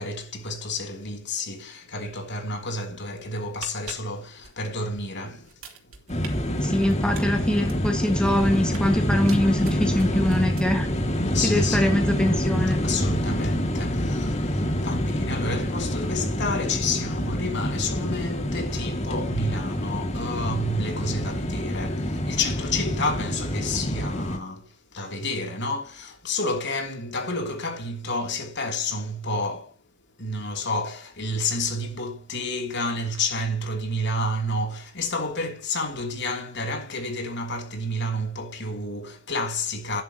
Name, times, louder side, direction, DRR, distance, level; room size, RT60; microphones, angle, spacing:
voice 1, 0.0-5.5 11.3-11.9 12.7-29.7 30.2-40.0, left 2 dB, 55° left, 3.0 m, -30 dB
sound 1, 3.4-5.1 5.4-6.3 6.6-8.9 9.3-11.0 11.3-11.5, right 6 dB, 85° right, 3.2 m, -43 dB
sound 2, 6.1-24.4, equal, 30° left, 2.2 m, -26 dB
voice 2, 6.6-10.9 11.4-12.9, left 1 dB, 5° left, 1.6 m, -23 dB
12.0 x 11.0 x 2.9 m
head